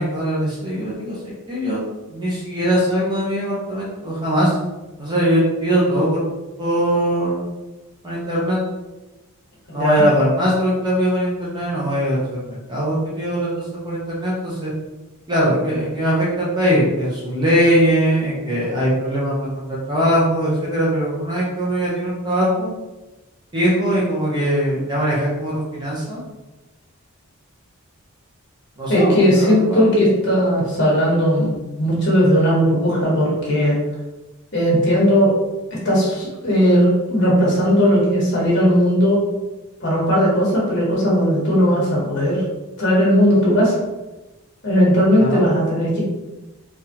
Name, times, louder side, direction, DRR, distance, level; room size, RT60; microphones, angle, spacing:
voice 1, 0.0-1.8 2.1-4.5 5.0-6.2 6.6-7.5 8.0-8.6 9.7-14.7 15.3-22.7 23.5-26.2 28.8-29.9 45.2-45.4, equal, 20° right, -6 dB, 0.8 m, -21 dB
voice 2, 9.7-10.0 28.9-31.5 31.8-33.8 34.5-35.3 35.7-39.2 39.8-42.4 42.8-43.8 44.6-46.0, equal, 50° left, -5 dB, 1.3 m, -17 dB
4.0 x 2.6 x 2.8 m, 1.1 s
head